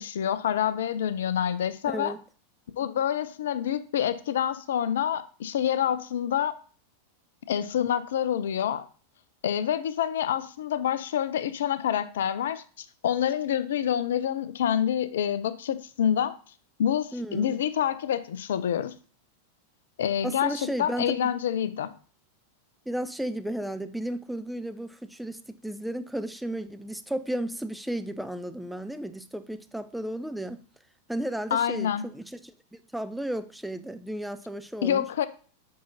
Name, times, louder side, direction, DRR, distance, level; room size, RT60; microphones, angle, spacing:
voice 1, 0.0-2.1 2.8-6.6 7.5-8.9 9.4-16.4 16.8-18.9 20.0-21.9 31.5-32.1 34.8-35.3, left 9 dB, 60° left, 0.4 m, -27 dB
voice 2, 1.8-2.2 17.1-17.6 20.2-21.3 22.9-30.6 31.1-35.0, right 1 dB, ahead, 0.4 m, -34 dB
6.2 x 5.8 x 2.7 m
figure-of-eight pair, 90°, 0 cm